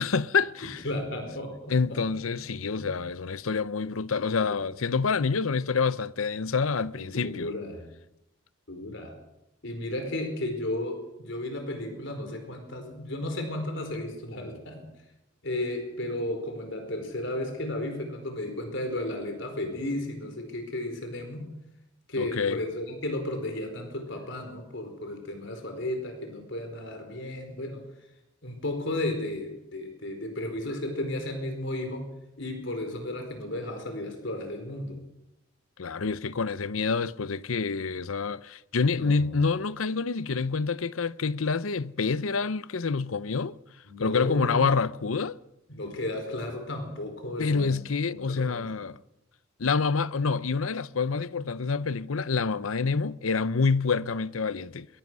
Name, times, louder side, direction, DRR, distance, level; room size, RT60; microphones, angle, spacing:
voice 1, 0.0-0.8 1.7-7.5 22.2-22.6 35.8-43.6 44.0-45.4 47.4-49.0 49.6-54.9, left 4 dB, 90° left, 0.7 m, -27 dB
voice 2, 0.8-2.3 2.8-2.9 4.4-4.6 7.0-7.9 8.7-9.1 9.6-14.9 15.4-21.5 22.1-27.8 28.4-32.1 32.4-35.0 38.9-39.4 43.9-44.7 45.7-47.8 48.1-48.7, left 1 dB, 65° left, 4.6 m, -34 dB
22.5 x 22.5 x 6.3 m
head